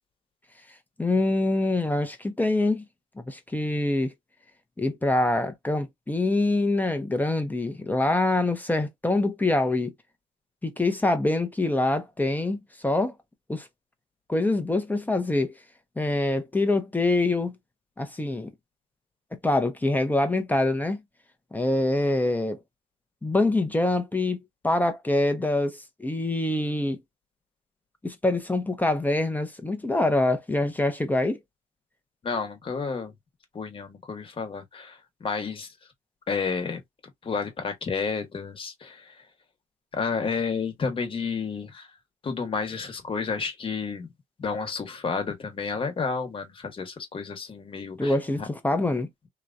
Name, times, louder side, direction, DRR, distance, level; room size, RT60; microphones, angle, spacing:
voice 1, 1.0-2.8 3.3-4.1 4.8-9.9 10.6-12.6 12.8-13.1 13.5-13.7 14.3-15.5 16.0-17.5 18.0-18.5 19.3-21.0 21.5-22.6 23.2-24.4 24.6-27.0 28.0-31.4 48.0-49.1, left 2 dB, 10° left, 0.7 m, -25 dB
voice 2, 32.2-33.1 33.5-35.7 36.3-36.8 37.2-39.1 39.9-41.9 42.2-44.1 44.4-48.5, left 5 dB, 35° left, 1.3 m, -31 dB
2.9 x 2.3 x 2.6 m
cardioid pair, 85°, 15 cm